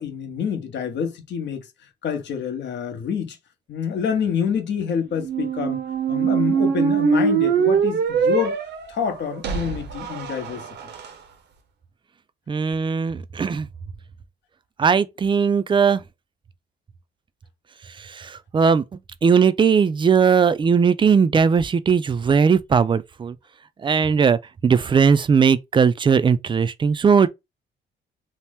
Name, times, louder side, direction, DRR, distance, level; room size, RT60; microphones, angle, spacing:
voice 1, 0.0-1.7 2.0-3.4 3.7-5.8 6.1-8.6 8.9-10.6, left 7 dB, 65° left, 0.8 m, -27 dB
sound 1, 5.1-11.1, right 6 dB, 60° right, 0.6 m, -22 dB
voice 2, 12.5-13.7 14.8-16.0 18.0-23.4 23.8-27.3, right 6 dB, 25° right, 0.3 m, -19 dB
2.8 x 2.0 x 3.4 m
cardioid pair, 90°, 20 cm